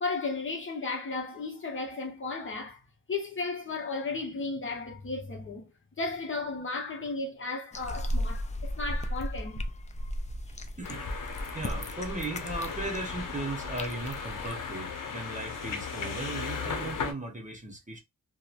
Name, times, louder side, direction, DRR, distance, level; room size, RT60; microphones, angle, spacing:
voice 1, 0.0-2.8 3.1-5.7 6.0-9.6, left 3 dB, 40° left, 0.8 m, -34 dB
sound 1, 7.7-14.5, equal, 20° left, 0.3 m, -35 dB
sound 2, 10.8-17.1, left 5 dB, 70° left, 0.8 m, -37 dB
voice 2, 10.8-11.1 11.5-18.0, right 2 dB, 25° right, 0.7 m, -37 dB
2.9 x 2.1 x 2.4 m
wide cardioid pair, 105°, 33 cm